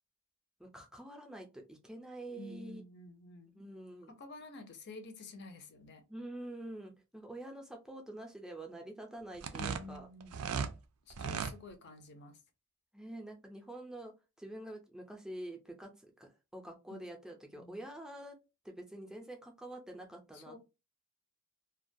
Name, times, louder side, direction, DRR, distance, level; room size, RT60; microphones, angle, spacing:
voice 1, 0.6-2.8 3.6-4.1 5.2-5.3 6.1-10.1 12.9-18.3 18.6-20.6, right 1 dB, 5° right, 0.4 m, -47 dB
voice 2, 2.3-3.7 4.2-6.0 9.6-10.8 11.1-12.4 16.9-17.0 17.5-17.8 20.3-20.6, left 2 dB, 50° left, 0.5 m, -50 dB
sound 1, 9.3-10.7 11.1-11.6, right 6 dB, 85° right, 0.4 m, -36 dB
2.3 x 2.2 x 2.6 m
head